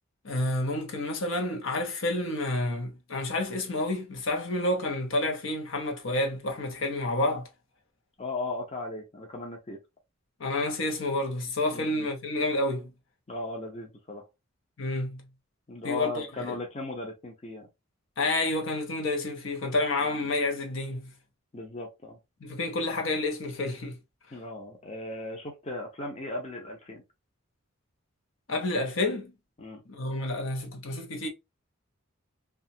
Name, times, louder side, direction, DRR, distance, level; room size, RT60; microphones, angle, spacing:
voice 1, 0.2-7.5 10.4-12.9 14.8-15.3 15.8-16.6 18.2-21.1 22.4-24.0 28.5-29.3 29.9-31.3, left 2 dB, 70° left, 0.7 m, -29 dB
voice 2, 8.2-9.8 11.7-12.1 13.3-14.3 15.7-17.7 20.0-20.3 21.5-22.2 24.3-27.0 29.6-29.8, left 2 dB, 30° left, 0.6 m, -37 dB
2.7 x 2.3 x 2.7 m
head